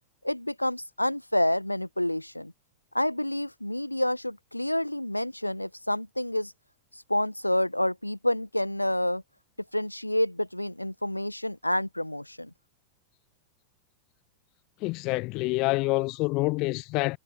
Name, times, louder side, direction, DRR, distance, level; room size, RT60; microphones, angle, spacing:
voice 1, 0.2-2.5 2.9-6.5 6.9-9.2 9.7-12.5, left 1 dB, 85° left, 1.4 m, -28 dB
voice 2, 14.8-17.2, left 24 dB, 40° left, 0.4 m, -27 dB
figure-of-eight pair, 90°, 0 cm